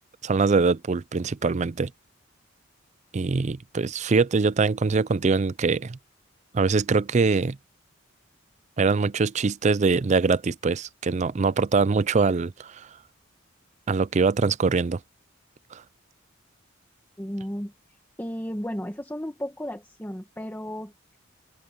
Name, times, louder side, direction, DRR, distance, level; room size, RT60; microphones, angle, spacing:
voice 1, 0.2-1.9 3.1-6.0 6.5-7.6 8.8-12.9 13.9-15.0 15.7-15.8, right 4 dB, 35° right, 0.4 m, -23 dB
voice 2, 17.2-17.7 18.2-20.9, equal, 10° left, 1.6 m, -33 dB
open air
head